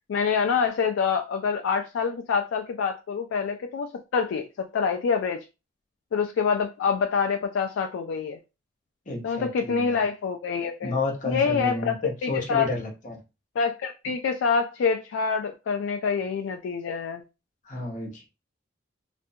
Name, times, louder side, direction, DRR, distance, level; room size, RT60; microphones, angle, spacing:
voice 1, 0.1-5.5 6.1-8.4 9.2-10.9 11.3-12.7 13.6-17.2, left 5 dB, 85° left, 0.3 m, -26 dB
voice 2, 9.1-10.0 10.8-13.2 17.6-18.3, left 2 dB, 40° left, 0.8 m, -31 dB
2.5 x 2.1 x 2.7 m
head